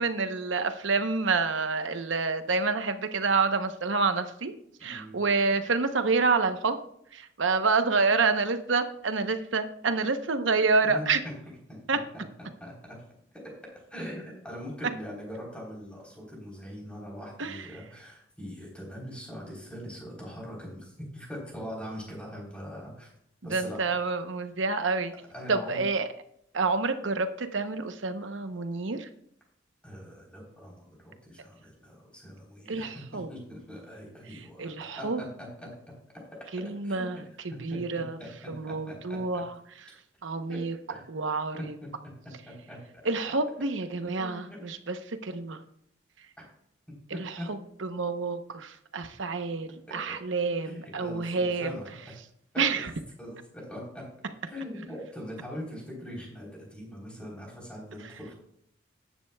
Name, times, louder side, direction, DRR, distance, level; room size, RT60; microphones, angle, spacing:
voice 1, 0.0-4.5 4.8-6.8 7.1-11.2 11.9-12.0 17.4-17.7 23.5-25.1 25.5-26.1 26.5-29.1 32.7-33.3 34.3-35.2 36.5-38.2 38.5-39.5 40.2-40.8 41.1-41.7 43.0-45.6 47.1-51.7 52.6-52.9, right 4 dB, 85° right, 8 dB, 0.9 m, -28 dB
voice 2, 4.8-5.2 10.8-11.1 11.7-12.2 12.6-13.0 13.9-23.1 23.4-23.9 25.3-25.8 29.8-35.7 36.8-37.1 37.7-39.4 40.5-40.6 40.9-41.0 42.5-43.0 44.2-44.6 46.4-46.5 47.1-47.5 49.9-50.2 50.6-52.0 52.7-52.8 53.2-54.0 54.4-58.3, equal, 5° left, -3 dB, 3.6 m, -42 dB
14.0 x 10.5 x 2.3 m, 0.73 s
head